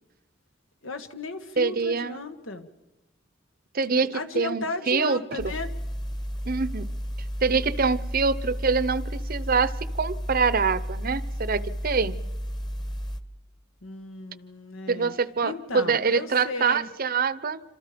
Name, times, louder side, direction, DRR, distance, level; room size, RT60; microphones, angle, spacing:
voice 1, 0.8-2.7 3.9-5.7 13.8-15.1 15.4-16.9, left 3 dB, 90° left, 7 dB, 1.7 m, -35 dB
voice 2, 1.6-2.2 3.7-4.1 4.3-5.5 6.5-6.9 7.4-12.2 14.9-17.6, right 5 dB, 50° right, 16 dB, 0.8 m, -25 dB
sound 1, 5.4-13.2, equal, 20° left, 1.2 m, -32 dB
28.0 x 26.0 x 5.2 m, 1.0 s
head